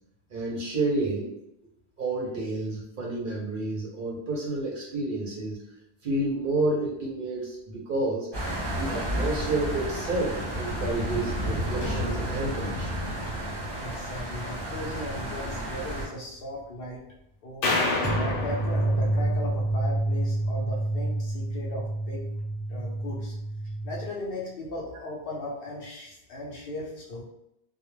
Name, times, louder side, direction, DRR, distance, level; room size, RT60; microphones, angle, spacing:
voice 1, 0.3-1.3 2.0-5.6 6.0-8.3 8.7-13.0, right 2 dB, 60° right, -3 dB, 0.6 m, -30 dB
sound 1, 8.3-16.1, equal, 25° right, 0.7 m, -32 dB
sound 2, 11.8-14.9 15.3-15.4 18.0-24.1, right 1 dB, 20° left, 0.8 m, -29 dB
voice 2, 13.8-17.0 17.4-17.7 18.2-22.3 22.7-23.3 23.8-27.2, left 1 dB, 60° left, -3 dB, 0.7 m, -37 dB
sound 3, 17.6-20.0, left 2 dB, 85° left, 1.0 m, -29 dB
2.2 x 2.0 x 3.0 m, 0.82 s
omnidirectional pair, 1.2 m